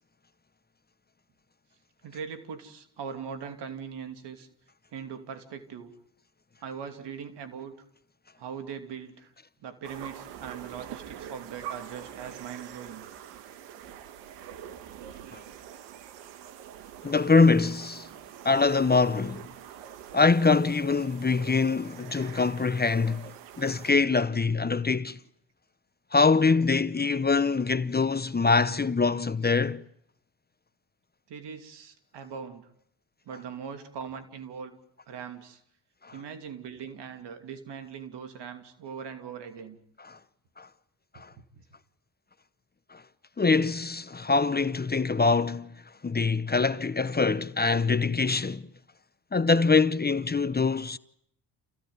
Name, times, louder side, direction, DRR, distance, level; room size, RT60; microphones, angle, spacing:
voice 1, 2.0-4.5 4.9-5.9 6.6-7.9 8.4-9.3 9.6-13.0 31.3-32.7 33.2-34.8 35.1-35.6 36.1-39.8 41.1-41.6, right 7 dB, 70° right, 2.8 m, -40 dB
sound 1, 9.8-23.9, right 10 dB, 85° right, 1.5 m, -45 dB
voice 2, 17.0-18.1 18.4-19.5 20.1-23.3 23.6-25.2 26.1-29.8 36.0-36.1 40.0-40.2 40.6-40.7 41.1-41.3 42.9-43.0 43.4-45.7 46.0-48.7 49.3-51.0, left 4 dB, 20° left, 0.9 m, -24 dB
28.5 x 16.0 x 9.5 m
supercardioid pair, 60°, 42 cm